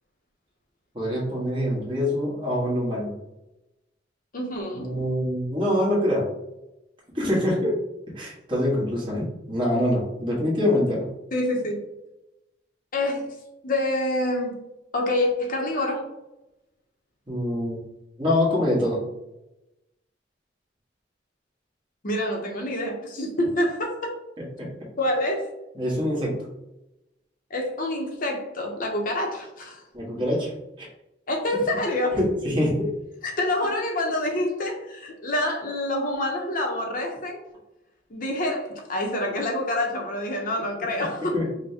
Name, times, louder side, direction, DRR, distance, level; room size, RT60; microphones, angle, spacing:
voice 1, 0.9-3.1 4.7-6.3 7.1-7.7 8.1-11.1 17.3-17.8 18.2-19.0 24.6-24.7 25.7-26.5 29.9-30.5 30.8-30.9 32.1-32.9 40.8-40.9 41.3-41.4, left 1 dB, 25° right, -6 dB, 1.3 m, -25 dB
voice 2, 4.3-4.9 11.3-11.8 12.9-13.2 13.6-14.6 14.9-16.1 22.0-24.1 25.0-25.5 27.5-29.8 31.3-32.2 33.2-37.4 38.1-41.3, left 1 dB, 45° left, 1 dB, 0.7 m, -27 dB
5.5 x 2.2 x 2.7 m, 0.93 s
head